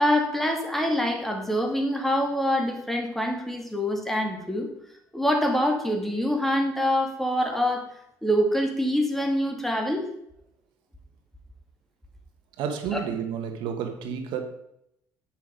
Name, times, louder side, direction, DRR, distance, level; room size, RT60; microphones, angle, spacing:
voice 1, 0.0-4.7 5.1-7.8 8.2-10.0 12.9-13.0, equal, 5° left, 2.3 m, -25 dB
voice 2, 12.6-14.4, right 7 dB, 75° right, 1.2 m, -30 dB
9.2 x 5.8 x 5.1 m
supercardioid pair, 70°, 8 cm